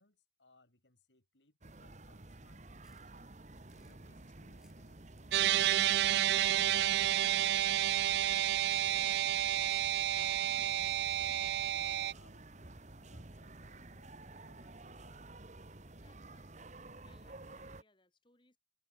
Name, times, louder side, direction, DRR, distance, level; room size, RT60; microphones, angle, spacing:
voice 1, 0.0-3.3 3.7-8.0 8.6-15.2, left 2 dB, 90° left, 5.0 m, -68 dB
sound 1, 1.6-17.8, right 2 dB, 40° right, 1.5 m, -52 dB
sound 2, 2.8-3.1 3.5-4.0 4.5-4.9 5.3-5.8 6.3-6.7 7.2-7.7 8.5-8.9, right 1 dB, ahead, 6.6 m, -71 dB
sound 3, 5.3-12.1, right 12 dB, 65° right, 0.3 m, -30 dB
voice 2, 15.9-18.6, left 3 dB, 25° left, 5.7 m, -70 dB
head